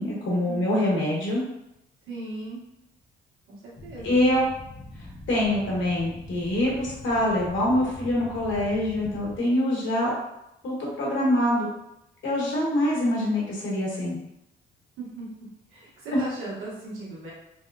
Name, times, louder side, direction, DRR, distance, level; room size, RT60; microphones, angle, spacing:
voice 1, 0.0-1.4 4.0-4.4 5.3-10.1 10.6-11.7 12.2-14.2 16.1-16.2, left 1 dB, 75° left, -4 dB, 1.2 m, -24 dB
voice 2, 2.1-2.7 3.5-4.1 15.0-15.3 15.7-17.3, right 2 dB, 90° right, -6 dB, 1.2 m, -38 dB
sound 1, 3.8-9.4, left 1 dB, 10° left, 0.5 m, -43 dB
3.4 x 2.3 x 2.3 m, 0.85 s
cardioid pair, 90°, 20 cm